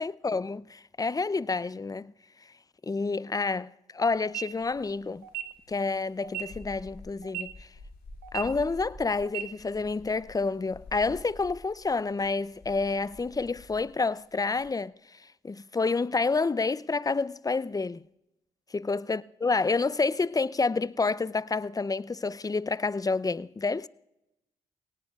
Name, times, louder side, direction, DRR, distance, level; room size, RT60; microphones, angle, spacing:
voice 1, 0.0-2.1 2.8-5.2 5.7-7.7 8.3-18.0 18.7-23.9, left 4 dB, 20° left, 0.5 m, -29 dB
sound 1, 4.1-4.2 4.5-14.7, left 2 dB, 65° left, 2.5 m, -50 dB
sound 2, 4.2-4.4 5.2-5.4 6.2-6.4 7.2-7.4 8.2-8.4 9.2-9.4, right 13 dB, 80° right, 0.9 m, -34 dB
24.5 x 18.0 x 2.3 m
hypercardioid pair, 40°, 16 cm